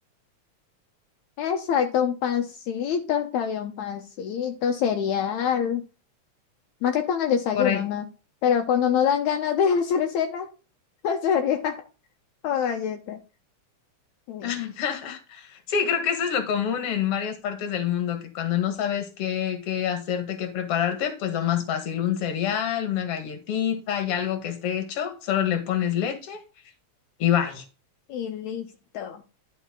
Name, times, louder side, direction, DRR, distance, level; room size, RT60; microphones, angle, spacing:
voice 1, 1.4-5.8 6.8-8.1 8.4-10.5 11.0-11.8 12.4-13.2 14.3-14.5 28.1-28.7 28.9-29.2, left 8 dB, 75° left, 2.2 m, -25 dB
voice 2, 14.4-26.4 27.2-27.6, left 9 dB, 55° left, 2.5 m, -27 dB
11.5 x 5.5 x 3.8 m
omnidirectional pair, 3.4 m